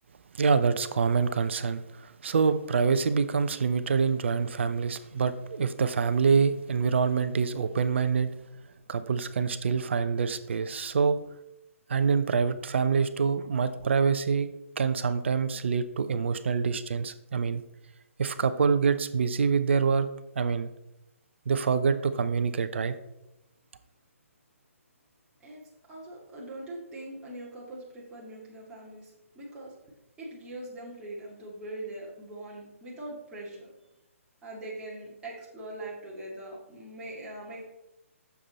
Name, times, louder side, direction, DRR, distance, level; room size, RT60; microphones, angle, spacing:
voice 1, 0.3-8.3 8.9-11.2 11.9-14.5 14.8-17.6 18.2-20.1 20.4-20.7 21.5-23.0, right 5 dB, 55° right, 12 dB, 0.7 m, -26 dB
voice 2, 25.4-29.8 30.2-33.7 34.4-37.7, right 1 dB, 10° right, -6 dB, 2.3 m, -42 dB
8.4 x 7.0 x 4.1 m, 0.90 s
figure-of-eight pair, 135°, 8 cm